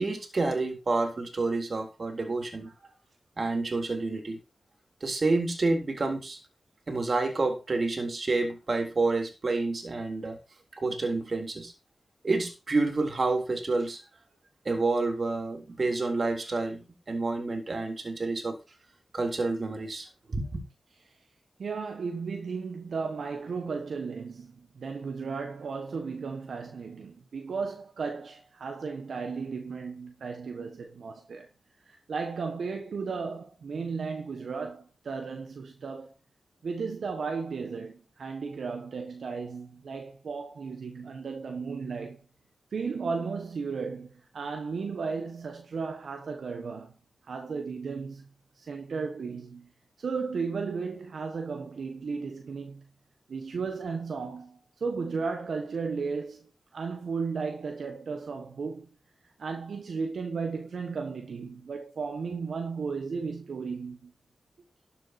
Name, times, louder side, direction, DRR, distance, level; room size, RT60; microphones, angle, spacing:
voice 1, 0.0-2.7 3.4-4.4 5.0-6.4 6.9-10.4 10.7-11.7 12.2-14.0 14.6-18.6 19.1-20.6, right 3 dB, 55° right, 3.5 m, -29 dB
voice 2, 21.6-31.5 31.8-36.1 36.6-42.2 42.7-46.9 47.2-48.2 48.5-49.7 50.0-52.8 53.3-58.9 59.4-64.1, right 5 dB, 80° right, 1.5 m, -35 dB
12.5 x 7.3 x 4.3 m
cardioid pair, 45°, 0 cm